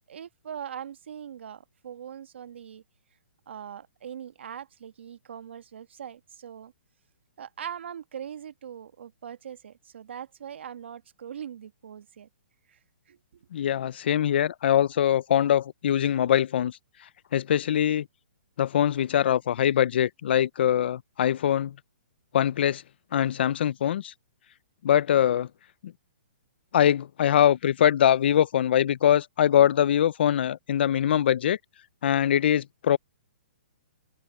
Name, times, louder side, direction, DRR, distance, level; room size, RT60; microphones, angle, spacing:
voice 1, 0.1-2.8 3.5-6.7 7.4-12.3 12.7-12.8 13.1-13.2, right 9 dB, 70° right, 1.5 m, -41 dB
voice 2, 13.5-16.8 17.3-18.1 18.6-21.7 22.3-22.8 23.1-24.1 24.8-25.5 25.8-25.9 26.7-31.6 32.0-33.0, left 10 dB, 60° left, 0.6 m, -23 dB
open air
hypercardioid pair, 150°, 7 cm